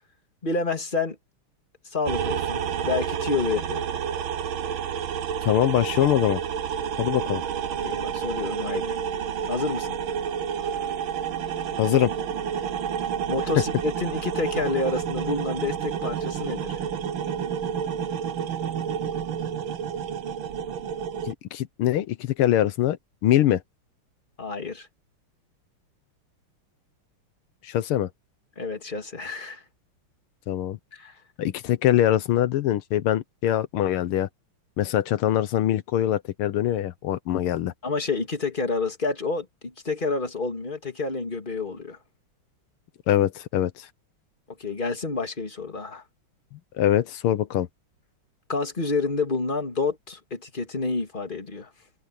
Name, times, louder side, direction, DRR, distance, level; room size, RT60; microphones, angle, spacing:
voice 1, 0.4-1.2 1.8-3.8 7.8-9.0 9.4-10.0 13.3-16.8 24.4-24.9 28.6-29.6 30.9-31.2 37.8-42.0 44.5-46.0 48.5-51.7, left 3 dB, 25° left, 2.5 m, -29 dB
sound 1, 2.1-21.3, right 8 dB, 70° right, 1.8 m, -29 dB
voice 2, 5.4-6.4 7.0-7.4 11.8-12.1 21.3-23.0 23.2-23.6 27.6-28.1 30.5-30.8 31.4-34.3 34.8-37.7 43.1-43.9 46.8-47.7, left 12 dB, 85° left, 1.7 m, -23 dB
omnidirectional pair, 2.3 m